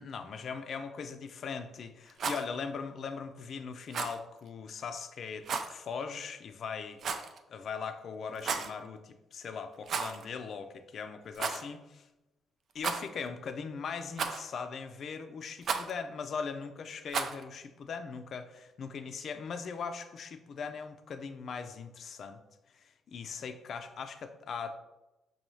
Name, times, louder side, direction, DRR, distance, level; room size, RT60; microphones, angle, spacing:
voice 1, 0.0-12.1 12.7-22.4 22.7-24.8, left 5 dB, 60° left, 8 dB, 0.4 m, -40 dB
Rattle, 2.1-2.5 3.9-4.2 5.4-5.7 7.0-7.4 8.3-8.7 9.8-10.3 10.5-10.6 11.3-11.6 12.8-13.3 14.2-14.6 15.6-15.9 17.1-17.4, right 5 dB, 60° right, 0.4 m, -34 dB
5.4 x 2.3 x 3.1 m, 0.98 s
cardioid pair, 90°, 0 cm